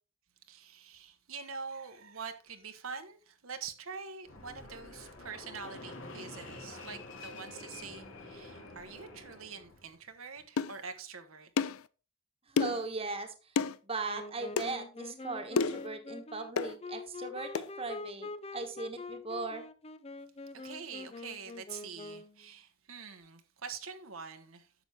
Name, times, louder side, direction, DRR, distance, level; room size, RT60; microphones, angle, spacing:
voice 1, 0.5-11.5 20.5-24.7, right 5 dB, 80° right, 1.2 m, -45 dB
Fixed-wing aircraft airplane, 4.2-9.9, left 2 dB, 70° left, 2.3 m, -48 dB
sound 1, 10.6-10.8 11.6-11.8 12.6-12.9 13.6-13.8 14.6-14.7 15.6-15.9 16.6-16.7 17.6-17.7, left 5 dB, 85° left, 0.5 m, -30 dB
voice 2, 12.5-13.5 13.8-19.6, right 3 dB, 25° right, 1.3 m, -38 dB
Wind instrument woodwind instrument, 14.0-22.5, left 3 dB, 30° left, 0.5 m, -45 dB
10.0 x 7.1 x 3.5 m
head